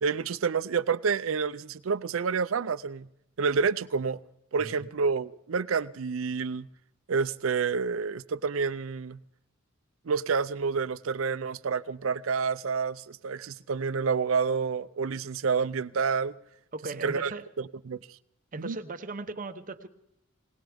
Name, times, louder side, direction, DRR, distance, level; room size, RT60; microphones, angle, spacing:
voice 1, 0.0-3.1 3.4-4.2 4.5-6.7 7.1-9.2 10.1-16.3 17.0-17.3 17.9-18.0 18.6-18.8, right 5 dB, 85° right, 0.5 m, -28 dB
voice 2, 4.6-4.9 16.7-17.5 18.5-19.9, right 2 dB, 40° right, 0.9 m, -38 dB
20.5 x 19.5 x 3.5 m
head